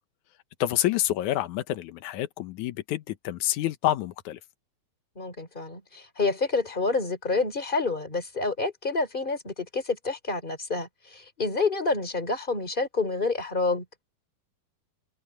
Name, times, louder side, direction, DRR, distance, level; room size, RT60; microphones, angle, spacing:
voice 1, 0.6-4.4, left 14 dB, 70° left, 2.0 m, -28 dB
voice 2, 5.1-13.8, left 3 dB, 15° left, 3.4 m, -28 dB
omnidirectional pair, 4.4 m